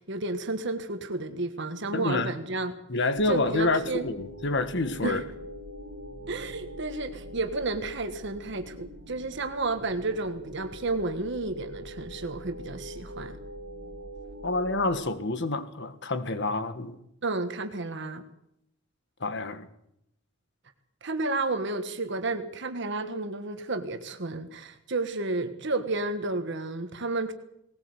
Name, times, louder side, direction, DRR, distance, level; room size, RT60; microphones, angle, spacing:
voice 1, 0.0-2.8 3.3-4.1 5.0-5.2 6.3-13.4 17.2-18.2 21.0-27.3, right 2 dB, 60° right, 1.5 m, -31 dB
voice 2, 1.9-2.3 2.9-5.2 14.4-17.0 19.2-19.7, left 2 dB, 60° left, 1.7 m, -28 dB
sound 1, 3.2-15.1, equal, 85° right, 1.7 m, -43 dB
19.0 x 19.0 x 8.1 m
head